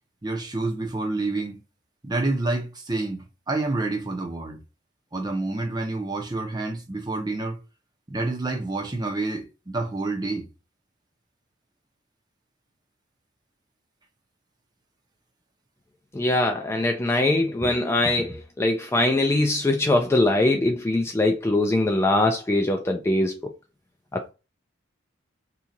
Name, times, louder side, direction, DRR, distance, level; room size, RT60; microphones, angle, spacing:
voice 1, 0.2-1.6 2.0-4.6 5.1-7.6 8.1-10.5, right 2 dB, 20° right, 0.7 m, -28 dB
voice 2, 16.1-23.4 24.1-24.3, left 2 dB, 15° left, 0.3 m, -22 dB
2.8 x 2.4 x 3.8 m
head